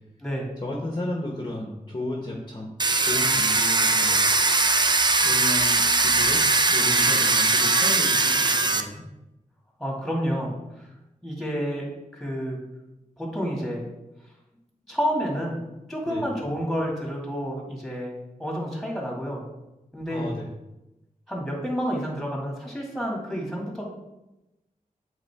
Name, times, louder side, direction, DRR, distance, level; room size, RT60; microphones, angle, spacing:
voice 1, 0.6-2.7 3.0-4.2 5.2-6.4 6.7-9.0 16.1-16.2 20.1-20.5, left 1 dB, 30° left, -1 dB, 1.1 m, -33 dB
Domestic sounds home sounds, 2.8-8.8, right 3 dB, 30° right, 0.5 m, -20 dB
voice 2, 9.8-10.9 11.2-11.9 12.1-12.6 13.2-13.8 14.9-15.6 15.9-19.4 19.9-20.3 21.3-23.8, equal, ahead, -2 dB, 2.2 m, -29 dB
8.0 x 3.8 x 3.6 m, 0.95 s
wide cardioid pair, 70°, 14 cm